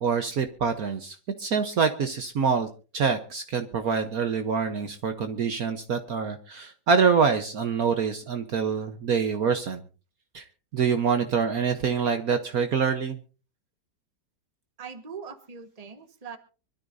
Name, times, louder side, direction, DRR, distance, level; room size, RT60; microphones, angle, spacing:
voice 1, 0.0-2.7 2.9-9.8 10.3-10.4 10.7-13.2, right 6 dB, 55° right, 7 dB, 1.3 m, -25 dB
voice 2, 14.8-16.4, right 6 dB, 25° right, 8 dB, 1.3 m, -41 dB
25.0 x 13.0 x 2.6 m, 0.35 s
omnidirectional pair, 2.0 m